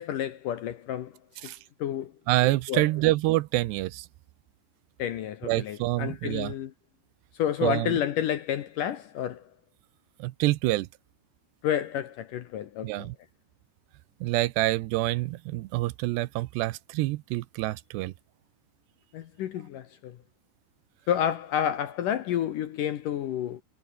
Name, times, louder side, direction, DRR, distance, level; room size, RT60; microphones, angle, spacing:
voice 1, 0.0-1.5 1.8-2.1 2.7-2.9 5.0-6.7 7.3-9.4 11.6-13.1 19.1-20.2 21.1-23.6, left 10 dB, 70° left, 2.2 m, -30 dB
voice 2, 2.3-4.1 5.4-6.5 7.6-8.0 10.2-10.9 12.8-13.2 14.2-18.1, right 18 dB, 80° right, 2.8 m, -27 dB
omnidirectional pair, 5.0 m